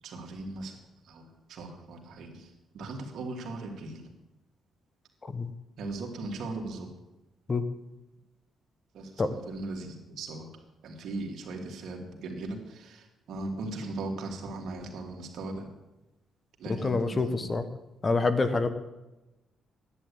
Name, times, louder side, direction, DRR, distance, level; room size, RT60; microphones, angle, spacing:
voice 1, 0.0-0.8 1.1-4.1 5.8-6.9 8.9-10.5 10.8-15.7 16.6-17.5, right 2 dB, 70° right, 2 dB, 2.7 m, -38 dB
voice 2, 16.7-17.6 18.0-18.7, left 3 dB, 30° left, 11 dB, 1.2 m, -27 dB
11.0 x 9.9 x 8.7 m, 1.0 s
cardioid pair, 90°, 0 cm